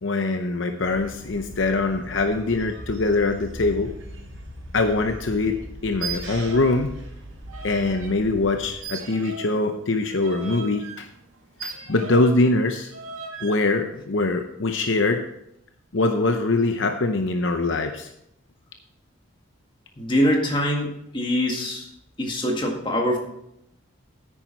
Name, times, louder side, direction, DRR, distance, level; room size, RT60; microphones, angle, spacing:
voice 1, 0.0-3.9 4.7-6.9 7.6-11.1 11.6-12.9 13.4-15.2 15.9-18.1, left 2 dB, 60° left, 6 dB, 0.7 m, -23 dB
sound 1, 0.9-8.8, equal, 65° right, 4.5 m, -40 dB
sound 2, 5.9-6.8 7.1-8.2 8.8-12.4 12.9-13.7, right 5 dB, 90° right, 2.0 m, -37 dB
voice 2, 20.0-21.8 22.2-23.2, equal, 20° left, 1 dB, 1.8 m, -23 dB
10.0 x 9.3 x 4.5 m, 0.77 s
head